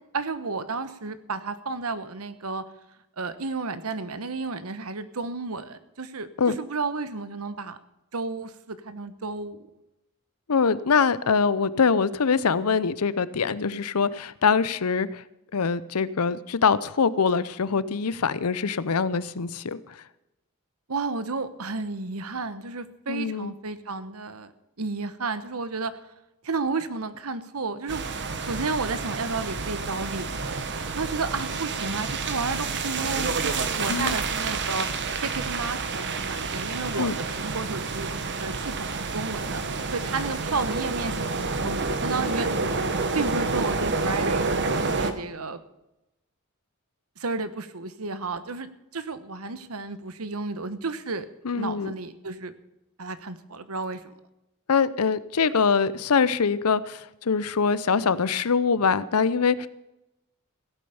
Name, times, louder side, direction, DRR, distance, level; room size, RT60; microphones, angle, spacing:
voice 1, 0.1-2.6 3.2-6.3 6.6-7.8 8.1-9.7 20.9-24.5 24.8-26.0 26.4-28.0 28.4-38.1 38.4-39.6 39.9-42.5 43.1-45.6 47.2-51.2 51.6-52.5 53.0-54.0, right 3 dB, 75° right, 13 dB, 1.2 m, -32 dB
voice 2, 10.5-15.2 15.5-19.8 23.1-23.5 33.9-34.2 36.9-37.2 51.4-51.9 54.7-59.7, left 5 dB, 85° left, 17 dB, 0.7 m, -23 dB
sound 1, 27.9-45.1, right 4 dB, 55° right, 1.3 m, -29 dB
16.0 x 8.7 x 7.0 m, 0.92 s
head